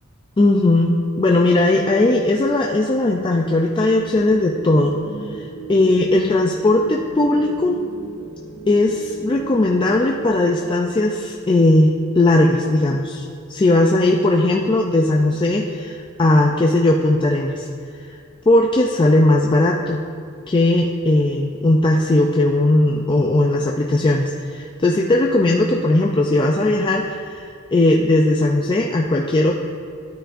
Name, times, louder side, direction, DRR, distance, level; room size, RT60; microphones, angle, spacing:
voice 1, 0.4-5.0 5.3-7.8 8.7-17.7 18.5-20.0 20.5-29.5, left 2 dB, 20° left, 0 dB, 0.4 m, -18 dB
sound 1, 3.9-10.3, right 3 dB, 40° left, 2.2 m, -36 dB
12.5 x 9.0 x 2.5 m, 2.3 s
head